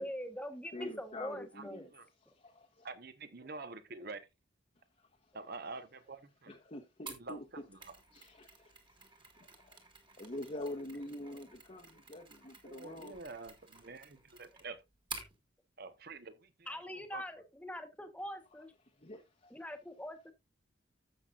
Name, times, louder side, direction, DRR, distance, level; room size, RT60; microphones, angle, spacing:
voice 1, 0.0-1.9 16.7-18.7 19.5-20.3, equal, 5° left, 1.2 m, -43 dB
voice 2, 0.7-1.9 2.3-2.9 6.5-7.4 8.1-8.8 9.4-9.8 10.2-13.2 19.0-19.5, left 1 dB, 35° left, 1.0 m, -45 dB
voice 3, 2.8-4.2 5.3-6.5 7.1-8.0 12.6-14.8 15.8-17.3, right 3 dB, 55° right, 1.1 m, -47 dB
Mechanisms, 7.1-15.3, right 4 dB, 25° right, 1.9 m, -52 dB
15.0 x 6.0 x 2.5 m
head